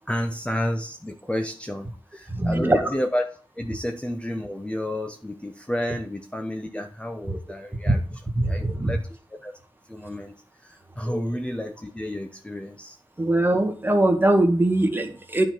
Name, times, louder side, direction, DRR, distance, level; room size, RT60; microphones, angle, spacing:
voice 1, 0.1-3.3 3.6-8.0 8.5-9.5 9.9-13.0, left 1 dB, 10° left, 4 dB, 0.9 m, -31 dB
voice 2, 2.3-2.8 8.4-8.9 11.1-11.2 13.2-15.5, right 1 dB, 20° right, 5 dB, 1.9 m, -21 dB
9.7 x 4.7 x 6.0 m, 0.40 s
cardioid pair, 60°, 9 cm